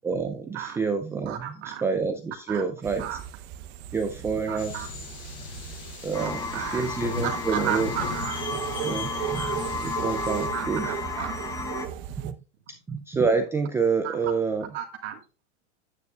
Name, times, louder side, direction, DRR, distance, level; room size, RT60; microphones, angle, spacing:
voice 1, 0.0-1.5 1.8-3.0 3.9-4.9 6.0-7.9 8.8-9.4 9.8-10.9 12.2-12.3 12.9-14.7, right 5 dB, 10° right, 4 dB, 0.4 m, -27 dB
voice 2, 1.2-1.8 2.5-2.6 3.0-3.2 4.5-4.9 6.2-6.9 7.2-8.4 9.3-9.6 10.5-11.3 13.4-13.5 14.0-14.3 14.7-15.2, right 10 dB, 65° right, 2 dB, 1.7 m, -34 dB
sound 1, 2.8-12.3, right 10 dB, 40° right, 0.8 m, -37 dB
sound 2, 4.6-10.5, left 4 dB, 50° left, 5.4 m, -38 dB
sound 3, 6.1-11.9, left 4 dB, 10° left, 0.8 m, -33 dB
9.7 x 9.2 x 2.4 m, 0.33 s
supercardioid pair, 130°, 35 cm